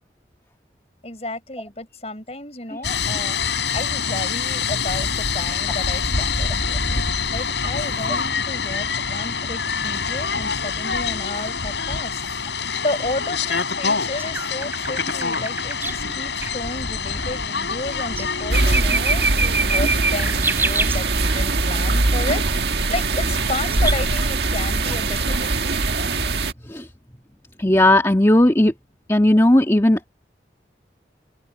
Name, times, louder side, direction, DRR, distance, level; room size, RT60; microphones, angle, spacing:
voice 1, 1.0-3.4 3.7-7.0 7.3-26.1, left 2 dB, 35° left, 6.0 m, -32 dB
sound 1, 2.8-18.8, left 5 dB, 80° left, 7.8 m, -25 dB
sound 2, 14.2-16.0 16.4-16.5 17.1-17.3 17.9-21.4 23.4-24.0, right 3 dB, 10° right, 4.4 m, -25 dB
sound 3, 18.5-26.5, right 3 dB, 70° right, 1.7 m, -21 dB
voice 2, 27.6-28.7 29.1-30.1, left 1 dB, 15° left, 1.6 m, -16 dB
open air
head